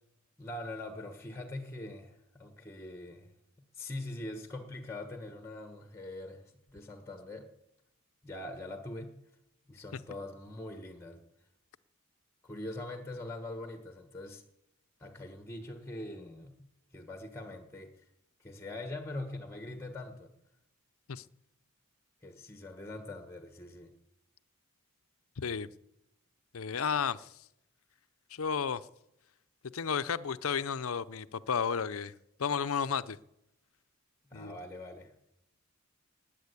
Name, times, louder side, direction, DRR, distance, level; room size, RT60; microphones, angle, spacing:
voice 1, 0.4-3.3 3.7-7.5 8.2-9.1 9.7-11.2 12.4-14.4 15.0-16.6 16.9-17.9 18.4-20.3 22.2-23.9 34.3-35.1, left 1 dB, 10° left, 1.3 m, -43 dB
voice 2, 25.4-25.7 26.5-27.3 28.3-28.8 29.7-32.1 32.4-33.2 34.3-34.5, left 6 dB, 80° left, 0.6 m, -32 dB
19.0 x 8.9 x 8.3 m
head